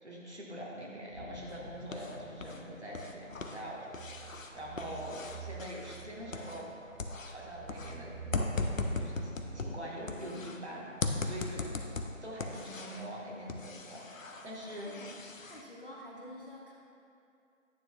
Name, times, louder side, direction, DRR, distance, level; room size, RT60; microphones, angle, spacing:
voice 1, 0.0-4.3 4.5-6.7 7.2-8.1 8.9-10.8 11.2-11.6 12.2-14.0 14.4-14.9, equal, 55° right, -4 dB, 1.5 m, -43 dB
sound 1, 1.1-6.1 7.7-13.4, equal, 35° right, 1.5 m, -53 dB
sound 2, 1.5-2.6 2.9-6.7 7.0-10.6 11.0-13.1 13.5-15.6, left 3 dB, 75° left, 0.7 m, -38 dB
sound 3, 3.9-10.5, right 7 dB, 85° right, 0.5 m, -49 dB
voice 2, 14.9-15.2 15.5-16.7, left 1 dB, 40° left, -4 dB, 0.8 m, -48 dB
9.3 x 6.1 x 2.3 m, 2.6 s
figure-of-eight pair, 175°, 41 cm